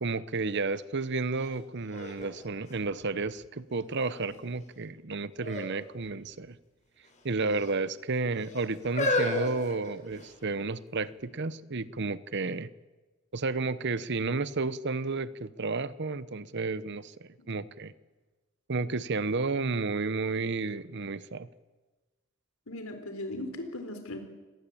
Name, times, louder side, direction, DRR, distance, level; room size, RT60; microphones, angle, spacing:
voice 1, 0.0-6.6 7.2-12.7 13.3-17.9 18.7-21.5, right 3 dB, 55° right, 0.9 m, -32 dB
sound 1, 1.4-1.5 1.9-3.4 4.0-4.5 5.4-5.7 6.0-6.2 7.0-7.7 8.4-10.4 11.2-11.3, left 2 dB, 35° left, 5.7 m, -33 dB
voice 2, 22.7-24.2, left 1 dB, 75° left, 4.0 m, -38 dB
26.5 x 19.0 x 8.5 m
head